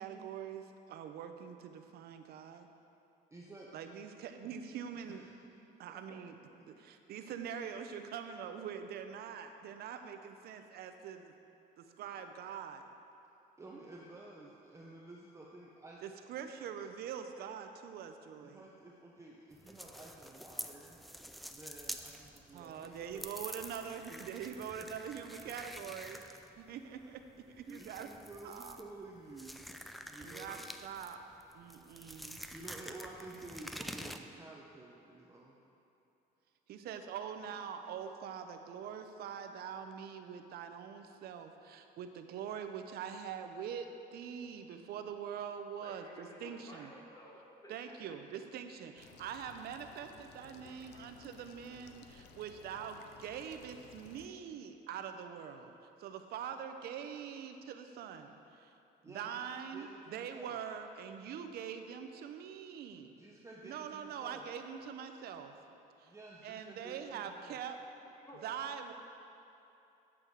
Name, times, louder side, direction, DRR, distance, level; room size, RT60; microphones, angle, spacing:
voice 1, 0.0-2.7 3.7-5.2 5.8-6.3 6.7-11.4 11.8-12.9 16.0-18.6 22.5-26.2 26.6-27.2 27.5-28.1 28.4-28.8 30.2-31.2 31.5-32.4 36.7-46.9 47.7-55.7 56.0-58.7 59.0-63.1 63.6-65.6 66.0-66.1 66.4-67.8 68.4-68.9, right 8 dB, 70° right, 7 dB, 0.7 m, -44 dB
voice 2, 3.3-4.1 5.1-5.6 6.1-6.2 6.5-6.7 13.6-16.0 18.4-21.0 21.5-23.3 24.1-24.3 24.8-25.0 25.3-26.2 27.0-27.2 27.7-29.6 30.0-30.7 32.2-35.6 59.0-60.6 63.0-64.4 66.0-67.6, right 2 dB, 15° right, -3 dB, 0.8 m, -52 dB
sound 1, 19.5-34.2, equal, ahead, 0.4 m, -48 dB
voice 3, 45.7-48.2 49.2-49.3 50.6-50.8 68.0-68.4, equal, 20° left, -3 dB, 1.9 m, -54 dB
sound 2, 49.0-54.3, left 6 dB, 85° left, 0.7 m, -58 dB
8.5 x 7.8 x 4.7 m, 2.9 s
cardioid pair, 110°, 17 cm